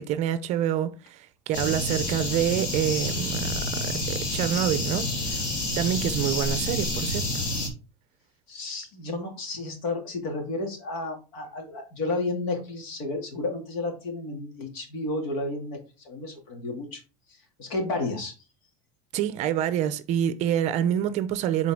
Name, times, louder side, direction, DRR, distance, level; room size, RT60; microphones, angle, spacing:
voice 1, 0.0-5.4 5.8-7.4 19.1-21.7, right 10 dB, 40° right, 0.5 m, -27 dB
sound 1, 1.5-7.7, left 1 dB, 45° left, 2.0 m, -29 dB
voice 2, 8.5-17.0 17.6-18.3, left 2 dB, 70° left, 2.3 m, -32 dB
7.5 x 4.0 x 3.5 m
cardioid pair, 160°, 18 cm